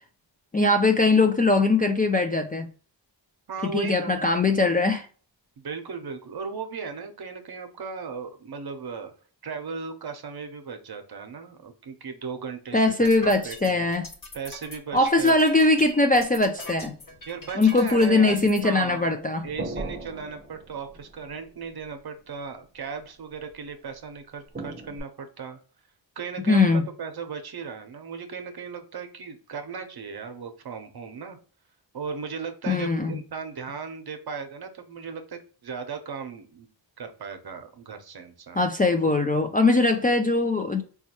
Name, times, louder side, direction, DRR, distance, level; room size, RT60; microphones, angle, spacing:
voice 1, 0.5-2.7 3.6-5.1 12.7-14.1 14.9-17.0 17.6-19.5 26.5-26.8 32.7-33.2 38.6-40.8, left 2 dB, 20° left, 0.3 m, -21 dB
voice 2, 3.5-4.3 5.6-9.1 9.4-13.9 14.3-15.4 17.3-19.1 19.4-25.6 26.2-31.4 31.9-36.7 37.0-38.6, right 5 dB, 55° right, 0.7 m, -37 dB
sound 1, 12.9-18.6, left 2 dB, 45° left, 1.1 m, -42 dB
sound 2, 16.2-17.4 17.9-18.8 19.1-22.0 23.4-23.5 24.5-25.0, right 2 dB, 25° right, 0.8 m, -40 dB
4.1 x 2.3 x 2.8 m
wide cardioid pair, 110°, 45 cm